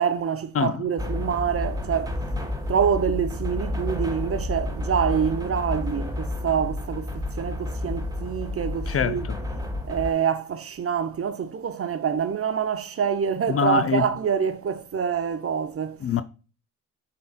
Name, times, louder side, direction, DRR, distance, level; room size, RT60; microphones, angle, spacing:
voice 1, 0.0-2.2 2.7-9.3 9.8-16.0, right 7 dB, 35° right, 0.7 m, -26 dB
sound 1, 1.0-10.1, left 1 dB, 10° right, 1.0 m, -30 dB
voice 2, 8.9-9.4 13.5-14.1 16.0-16.2, left 7 dB, 40° left, 0.4 m, -24 dB
5.3 x 3.9 x 2.2 m
supercardioid pair, 50°, 38 cm